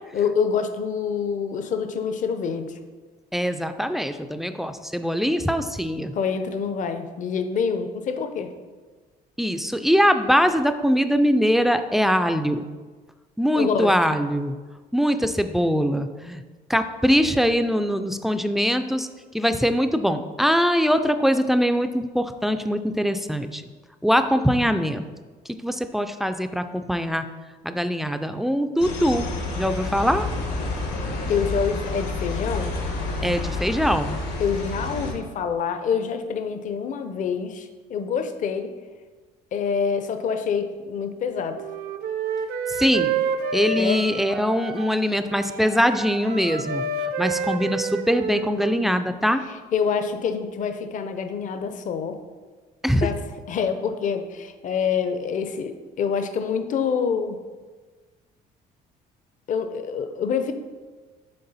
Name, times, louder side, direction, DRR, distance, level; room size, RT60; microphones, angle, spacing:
voice 1, 0.1-2.7 6.1-8.5 13.5-13.9 31.3-32.7 34.4-38.7 39.5-41.6 43.8-44.0 49.5-52.2 53.0-53.2 53.5-57.4 59.5-60.5, left 6 dB, 50° left, 8 dB, 0.6 m, -26 dB
voice 2, 3.3-6.1 9.4-12.6 13.4-14.5 14.9-16.4 16.7-19.1 19.3-23.6 24.0-25.0 25.6-27.2 27.6-29.3 29.6-30.3 33.2-34.2 42.7-43.1 43.5-46.8 47.2-49.4 52.8-53.1, equal, ahead, 9 dB, 0.3 m, -22 dB
sound 1, 28.8-35.1, left 2 dB, 85° left, 1.5 m, -29 dB
Wind instrument woodwind instrument, 41.5-45.0 45.3-48.8, right 4 dB, 70° right, 0.5 m, -29 dB
6.7 x 3.9 x 4.0 m, 1.4 s
cardioid pair, 110°, 17 cm